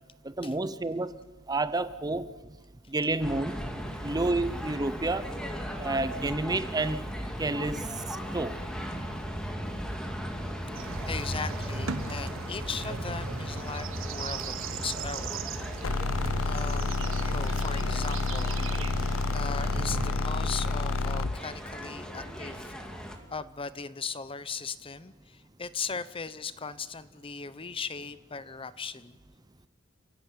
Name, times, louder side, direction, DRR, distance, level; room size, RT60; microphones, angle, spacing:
voice 1, 0.2-1.1 1.5-2.3 2.9-3.6 4.0-5.3 5.8-7.1 7.4-7.9 8.3-8.6, right 2 dB, 20° right, 14 dB, 0.7 m, -29 dB
sound 1, 3.2-23.2, equal, 5° left, 2.4 m, -37 dB
sound 2, 10.7-20.1, right 4 dB, 70° right, 1.3 m, -38 dB
voice 2, 11.1-15.4 16.4-18.6 19.3-22.7 23.3-29.2, left 5 dB, 25° left, 15 dB, 0.8 m, -38 dB
sound 3, 15.8-21.4, left 3 dB, 80° left, 0.9 m, -29 dB
28.5 x 15.5 x 9.0 m, 1.2 s
head